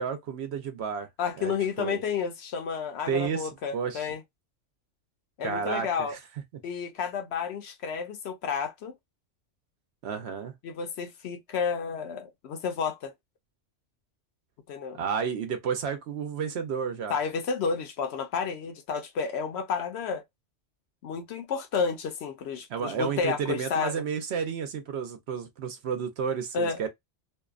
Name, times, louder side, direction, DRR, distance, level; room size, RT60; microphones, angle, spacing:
voice 1, 0.0-1.1 1.4-2.0 3.1-4.1 5.4-6.2 10.0-10.5 14.9-17.2 22.7-26.9, right 7 dB, 65° right, 0.8 m, -31 dB
voice 2, 1.2-4.2 5.4-6.1 6.6-8.9 10.6-13.1 14.7-15.0 17.1-20.2 21.0-23.9 26.5-26.9, left 6 dB, 65° left, 0.8 m, -31 dB
2.6 x 2.1 x 2.3 m
omnidirectional pair, 1.3 m